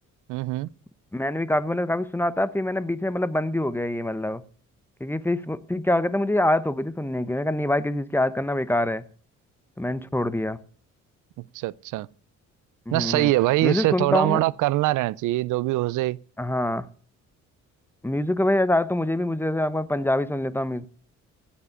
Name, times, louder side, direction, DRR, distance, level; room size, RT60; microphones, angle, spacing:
voice 1, 0.3-0.7 11.4-12.1 12.9-16.2, right 18 dB, 90° right, 0.5 m, -23 dB
voice 2, 1.1-4.4 5.0-9.0 9.8-10.6 12.9-13.3 13.6-14.4 16.4-16.9 18.0-20.9, left 1 dB, 5° left, 0.9 m, -25 dB
16.0 x 7.4 x 6.8 m
cardioid pair, 90°, 30 cm